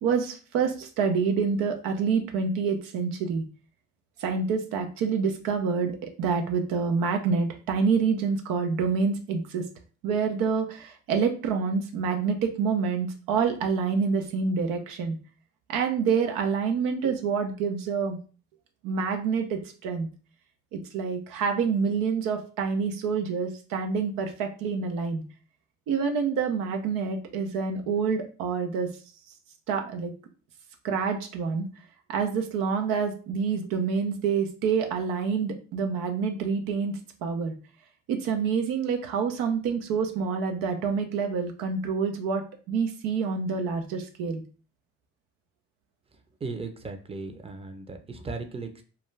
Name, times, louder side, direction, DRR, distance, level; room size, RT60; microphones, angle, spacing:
voice 1, 0.0-3.4 4.2-9.6 10.0-15.2 15.7-18.2 18.8-20.1 20.7-25.2 25.9-28.9 29.7-30.1 30.8-31.7 32.1-37.5 38.1-42.4 42.7-44.4, right 5 dB, 85° right, 5 dB, 0.5 m, -27 dB
voice 2, 46.4-48.8, right 3 dB, 20° right, 6 dB, 0.5 m, -37 dB
2.3 x 2.2 x 3.1 m, 0.38 s
supercardioid pair, 50°, 33 cm